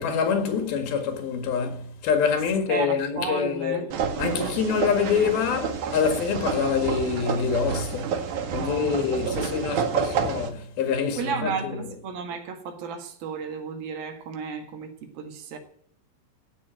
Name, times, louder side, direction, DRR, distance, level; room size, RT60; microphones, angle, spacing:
voice 1, 0.0-3.9 4.2-8.2 8.5-11.9, left 6 dB, 80° left, 3.7 m, -26 dB
voice 2, 2.5-3.9 8.4-8.9 9.4-9.5 11.2-15.6, right 5 dB, 80° right, 3.6 m, -33 dB
sound 1, 3.9-10.5, right 6 dB, 60° right, 2.8 m, -29 dB
16.0 x 6.0 x 9.1 m
omnidirectional pair, 4.2 m